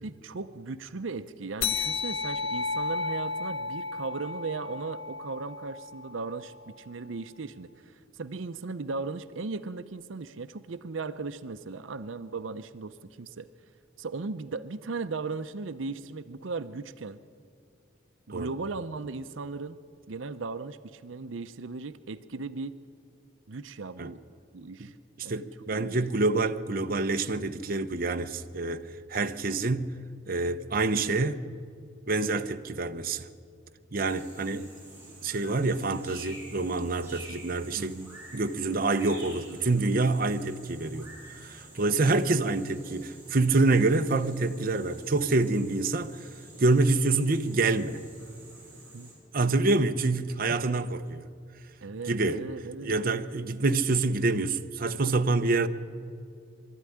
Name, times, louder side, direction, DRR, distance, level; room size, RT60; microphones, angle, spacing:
voice 1, 0.0-13.5 14.0-17.2 18.3-19.8 20.1-22.8 23.5-24.2 24.5-25.0 25.2-25.4 25.7-26.0 34.4-34.7 37.7-38.2 42.0-42.3 48.9-49.1 50.5-50.8 51.8-53.0, right 4 dB, 85° right, 0.7 m, -37 dB
sound 1, 1.6-6.5, left 4 dB, 75° left, 1.1 m, -33 dB
voice 2, 25.2-28.8 29.1-29.9 30.3-31.4 32.1-33.3 33.9-34.6 35.2-38.0 38.3-41.1 41.4-46.3 46.6-48.0 49.3-51.2 52.1-52.4 52.8-55.7, right 3 dB, 50° right, 0.8 m, -26 dB
sound 2, 33.9-49.1, right 2 dB, 10° right, 7.2 m, -49 dB
22.5 x 13.0 x 10.0 m
head